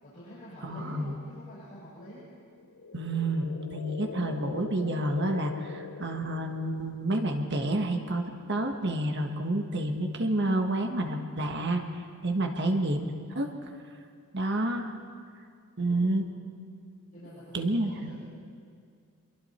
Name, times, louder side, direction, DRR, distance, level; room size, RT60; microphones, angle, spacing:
voice 1, 0.0-2.2 12.4-12.7 15.8-16.1 17.1-18.2, equal, 35° left, -11 dB, 7.1 m, -47 dB
voice 2, 0.6-1.1 2.9-13.0 13.3-13.7 14.3-14.9 15.8-16.3 17.5-18.2, right 1 dB, 55° right, 4 dB, 1.6 m, -29 dB
sound 1, 2.6-7.0, left 5 dB, 70° left, 0.6 m, -42 dB
26.0 x 22.5 x 4.5 m, 2.2 s
head